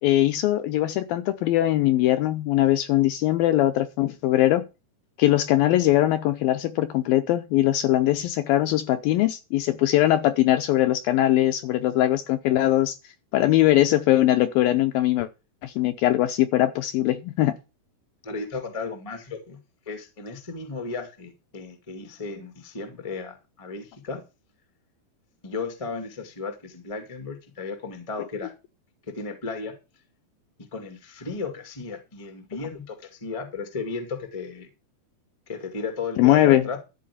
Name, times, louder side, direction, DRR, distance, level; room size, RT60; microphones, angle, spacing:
voice 1, 0.0-4.6 5.2-13.0 13.3-15.3 15.6-17.5 36.2-36.7, left 14 dB, 75° left, 2.2 m, -21 dB
voice 2, 18.2-19.6 19.8-24.2 25.4-28.5 29.1-29.7 30.7-34.7 35.5-36.8, left 4 dB, 45° left, 0.4 m, -34 dB
13.5 x 4.7 x 8.4 m
omnidirectional pair, 4.9 m